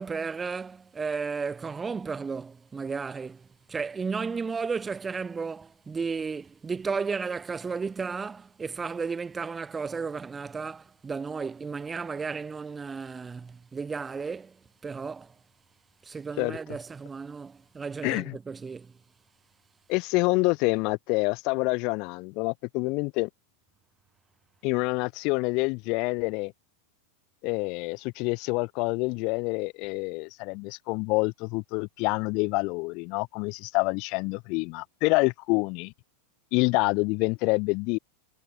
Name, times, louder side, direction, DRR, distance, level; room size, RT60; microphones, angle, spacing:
voice 1, 0.0-14.6 14.8-15.3 16.0-18.9, right 5 dB, 15° right, 7.6 m, -34 dB
voice 2, 18.0-18.4 19.9-23.3 24.6-26.5 27.4-35.9 36.5-38.0, left 28 dB, 45° left, 4.3 m, -27 dB
figure-of-eight pair, 90°, 0 cm